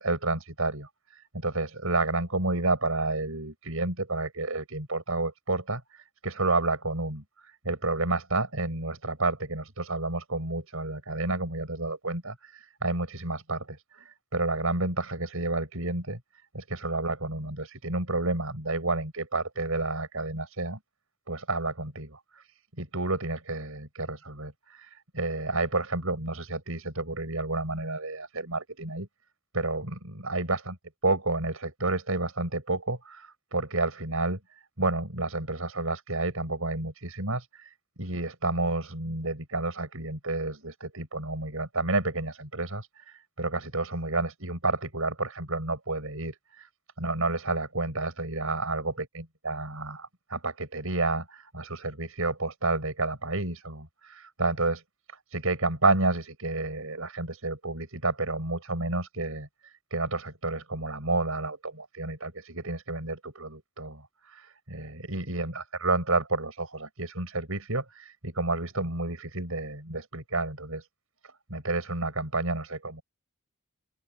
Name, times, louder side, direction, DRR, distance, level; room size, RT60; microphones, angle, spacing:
voice 1, 0.0-16.2 16.5-20.8 21.3-22.5 22.8-29.1 29.5-30.7 31.0-46.7 47.0-54.8 55.3-70.9 71.2-73.0, right 2 dB, 70° right, 7.8 m, -30 dB
open air
head